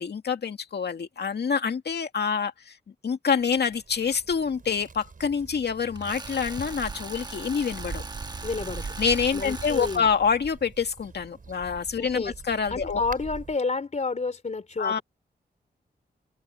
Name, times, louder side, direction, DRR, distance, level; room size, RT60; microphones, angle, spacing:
voice 1, 0.0-2.8 3.0-8.0 9.0-13.0 14.8-15.0, left 6 dB, 70° left, 2.2 m, -26 dB
sound 1, 3.3-13.6, right 4 dB, 50° right, 5.9 m, -42 dB
Tools, 6.0-10.0, right 3 dB, 25° right, 1.3 m, -40 dB
voice 2, 8.4-8.8 9.3-10.1 12.0-12.3 12.7-15.0, left 4 dB, 40° left, 3.8 m, -30 dB
wide cardioid pair, 100°, 18 cm